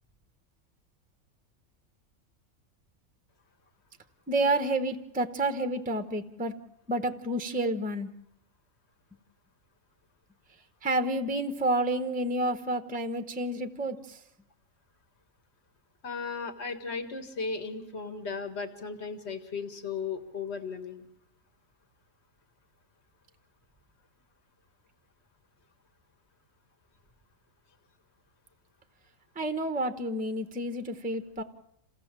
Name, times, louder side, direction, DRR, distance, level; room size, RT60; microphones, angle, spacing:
voice 1, 4.3-6.5 6.9-8.1 10.8-14.2 29.4-31.4, right 2 dB, 5° right, 9 dB, 0.8 m, -29 dB
voice 2, 16.0-21.0, left 5 dB, 50° left, 8 dB, 1.9 m, -36 dB
27.5 x 16.5 x 7.4 m, 0.81 s
omnidirectional pair, 1.5 m